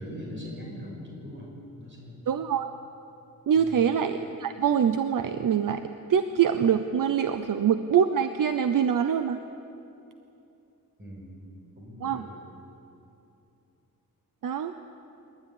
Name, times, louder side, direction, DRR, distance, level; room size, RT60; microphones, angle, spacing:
voice 1, 0.0-2.3 3.5-3.9 11.0-11.4 11.8-12.3, equal, 35° right, -2 dB, 6.4 m, -41 dB
voice 2, 2.3-2.7 3.5-5.8 6.1-9.4 12.0-12.2 14.4-14.7, right 8 dB, 70° right, 9 dB, 0.8 m, -24 dB
26.5 x 12.5 x 9.9 m, 2.8 s
wide cardioid pair, 160°, 34 cm